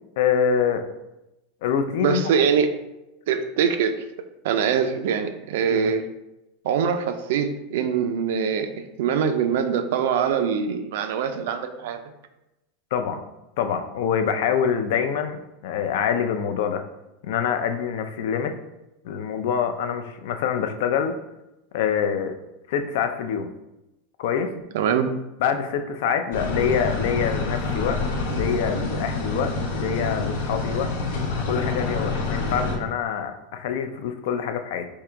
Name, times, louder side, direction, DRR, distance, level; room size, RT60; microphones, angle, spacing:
voice 1, 0.2-0.8 1.6-2.3 5.7-5.9 12.9-13.2 13.6-16.8 17.2-18.5 19.0-21.1 21.7-22.3 22.7-23.5 24.2-24.5 25.4-30.9 31.4-34.9, left 7 dB, 65° left, 8 dB, 0.4 m, -25 dB
voice 2, 2.0-2.7 3.3-4.0 4.4-6.0 6.6-12.0 24.7-25.2, right 7 dB, 70° right, 8 dB, 0.4 m, -23 dB
sound 1, 26.3-32.8, left 3 dB, 90° left, 1.1 m, -27 dB
3.7 x 2.9 x 4.5 m, 0.93 s
supercardioid pair, 170°, 0 cm